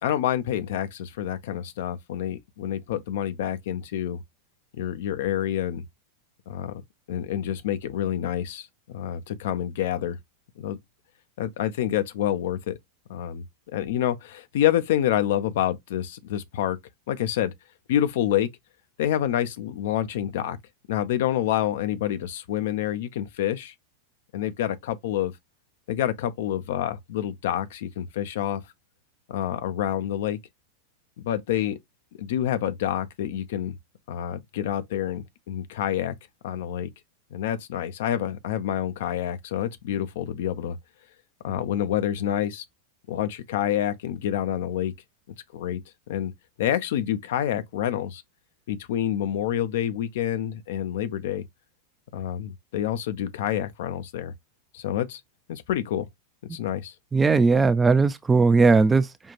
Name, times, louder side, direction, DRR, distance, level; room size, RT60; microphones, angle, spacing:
voice 1, 0.0-4.2 4.8-5.8 6.5-6.7 7.1-10.2 10.6-10.8 11.4-12.8 13.1-13.4 13.7-16.8 17.1-17.5 17.9-18.5 19.0-20.6 20.9-23.7 24.3-25.3 25.9-28.6 29.3-30.4 31.2-31.8 32.2-33.8 34.1-36.1 36.4-36.9 37.3-40.8 41.4-42.6 43.1-44.9 45.5-45.8 46.1-46.3 46.6-48.2 48.7-51.4 52.1-54.3 54.7-55.2 55.5-56.1 56.5-56.9, left 11 dB, 55° left, 0.5 m, -27 dB
voice 2, 57.1-59.3, right 4 dB, 15° right, 0.4 m, -19 dB
5.3 x 2.4 x 2.8 m
figure-of-eight pair, 90°, 0 cm